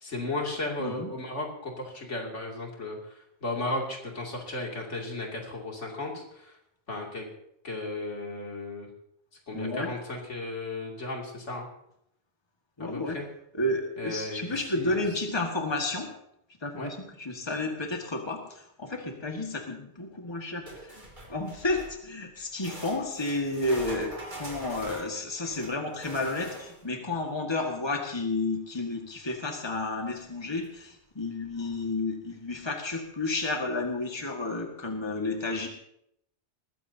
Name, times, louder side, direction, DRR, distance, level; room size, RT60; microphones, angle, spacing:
voice 1, 0.0-3.1 3.4-6.5 6.9-7.3 7.6-8.9 9.5-11.7 12.9-13.2 14.0-15.0 16.8-16.9, left 2 dB, 85° left, 0 dB, 3.1 m, -35 dB
voice 2, 0.8-1.1 9.5-9.9 12.8-13.2 13.5-16.1 16.6-35.7, left 2 dB, 20° left, 2 dB, 1.8 m, -31 dB
sound 1, 20.7-22.0 22.6-26.9 30.2-30.3 30.6-30.7 31.4-31.5, right 1 dB, 40° right, 3.1 m, -43 dB
20.5 x 15.0 x 2.8 m, 0.76 s
omnidirectional pair, 1.2 m